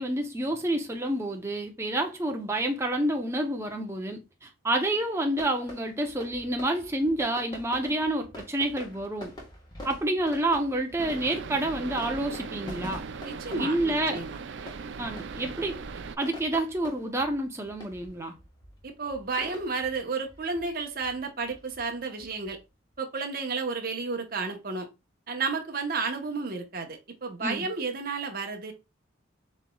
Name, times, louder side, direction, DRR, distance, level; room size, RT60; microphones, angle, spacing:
voice 1, 0.0-9.3 9.8-13.0 13.5-14.2 15.0-15.8 16.2-18.3 27.4-27.7, right 1 dB, 15° right, 0.6 m, -29 dB
sound 1, 5.3-23.0, left 1 dB, 20° left, 1.3 m, -47 dB
sound 2, 11.0-16.2, right 5 dB, 70° right, 0.4 m, -39 dB
voice 2, 13.2-14.4 18.8-22.6 23.0-24.9 25.3-28.7, right 4 dB, 50° right, 0.9 m, -32 dB
7.3 x 3.1 x 2.3 m
head